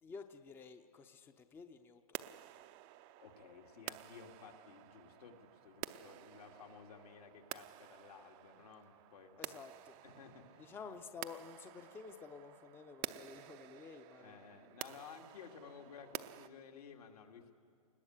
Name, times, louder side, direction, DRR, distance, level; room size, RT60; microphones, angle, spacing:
voice 1, 0.0-2.2 9.4-10.0 10.6-14.7 15.8-16.1, left 5 dB, 10° left, 8 dB, 0.7 m, -52 dB
sound 1, 2.1-16.5, right 15 dB, 30° right, 0.6 m, -51 dB
voice 2, 3.2-9.6 10.0-10.7 14.2-17.5, left 6 dB, 75° left, 2 dB, 3.0 m, -55 dB
29.5 x 20.5 x 8.2 m, 2.2 s
hypercardioid pair, 145°, 19 cm